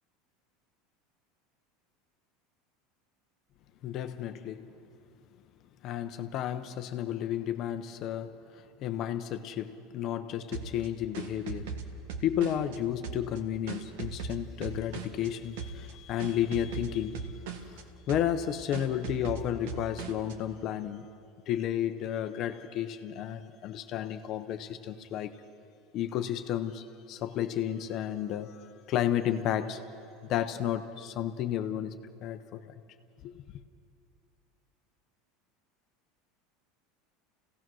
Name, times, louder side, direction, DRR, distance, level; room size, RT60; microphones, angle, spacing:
voice 1, 3.8-4.7 5.8-11.8 12.2-17.3 17.6-17.7 18.1-21.1 21.5-25.4 25.9-29.8 30.2-31.9 32.2-32.7 33.2-33.3, left 10 dB, 40° left, 8 dB, 0.7 m, -32 dB
sound 1, 10.5-12.8 13.0-15.3 15.6-15.9 16.2-17.8 18.1-18.4 18.7-20.3, right 6 dB, 80° right, 1.6 m, -39 dB
27.5 x 17.0 x 6.2 m, 2.4 s
supercardioid pair, 160°, 0 cm